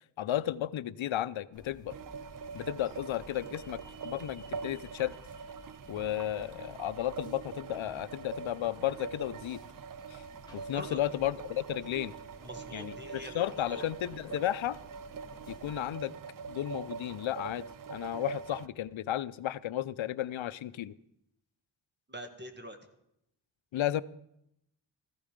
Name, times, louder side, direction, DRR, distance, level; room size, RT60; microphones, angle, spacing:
voice 1, 0.2-1.9 2.5-5.1 5.9-9.6 10.1-10.2 10.5-12.1 12.7-14.8 15.5-16.1 16.5-20.9 23.7-24.0, left 12 dB, 85° left, 17 dB, 0.6 m, -33 dB
sound 1, 1.4-17.0 17.5-17.6, right 2 dB, 65° right, 3.3 m, -64 dB
sound 2, 1.5-15.9, left 2 dB, 10° left, 2.5 m, -57 dB
sound 3, 1.9-18.7, right 5 dB, 45° right, 0.6 m, -44 dB
voice 2, 10.7-11.0 12.4-13.9 22.1-22.8, equal, 25° right, 6 dB, 1.9 m, -44 dB
15.0 x 14.5 x 5.2 m, 0.79 s
wide cardioid pair, 90°, 46 cm